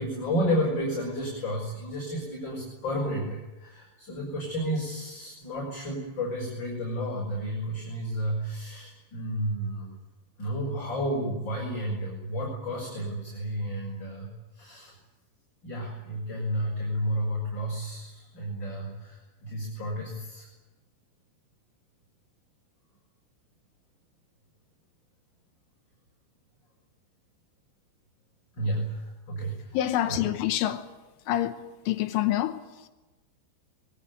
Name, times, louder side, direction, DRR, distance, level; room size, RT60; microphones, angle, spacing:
voice 1, 0.0-9.9 10.4-14.3 14.5-14.9 15.6-20.5 28.6-29.7 30.1-30.2, equal, 20° left, 6.3 m, -31 dB
voice 2, 29.4-30.9 31.3-32.9, left 13 dB, 80° left, 3.5 m, -28 dB
23.5 x 22.0 x 9.5 m
omnidirectional pair, 5.7 m